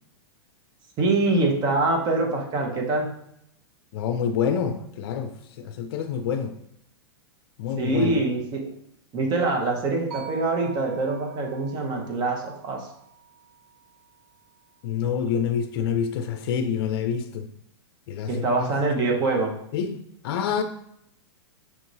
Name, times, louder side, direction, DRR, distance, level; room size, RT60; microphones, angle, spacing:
voice 1, 1.0-3.1 7.8-8.7 9.1-12.9 18.3-19.5, right 3 dB, 30° right, 1 dB, 1.1 m, -24 dB
voice 2, 3.9-6.6 7.6-8.2 14.8-17.5 18.1-18.7 19.7-20.6, left 7 dB, 60° left, 7 dB, 0.5 m, -27 dB
sound 1, 10.1-14.3, right 5 dB, 55° right, 1.5 m, -45 dB
6.0 x 2.9 x 2.7 m, 0.74 s
hypercardioid pair, 130°, 14 cm